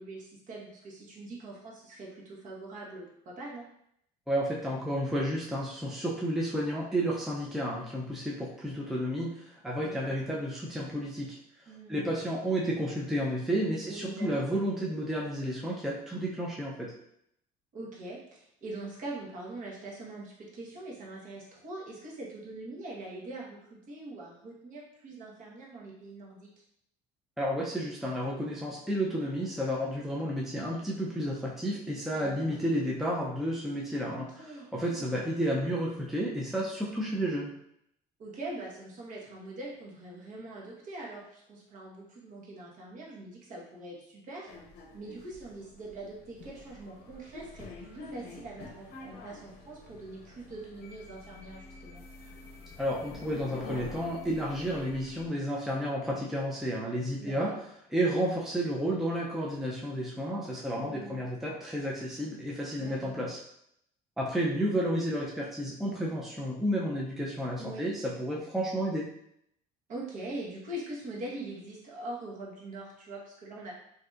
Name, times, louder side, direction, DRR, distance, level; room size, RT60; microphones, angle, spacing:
voice 1, 0.0-3.6 9.8-10.1 11.7-12.2 13.8-14.4 17.7-26.5 32.1-32.6 34.1-35.3 38.2-44.5 44.9-52.0 57.2-57.6 60.7-61.2 62.8-63.2 67.6-67.9 69.9-73.7, right 2 dB, 45° right, -3 dB, 1.1 m, -43 dB
voice 2, 4.3-11.4 11.9-16.9 27.4-34.5 34.7-37.5 52.8-57.5 57.9-63.4 64.2-69.1, equal, ahead, -4 dB, 0.5 m, -31 dB
sound 1, 44.5-55.3, left 2 dB, 60° left, 0.8 m, -47 dB
3.9 x 2.7 x 2.4 m, 0.73 s
cardioid pair, 125°, 18 cm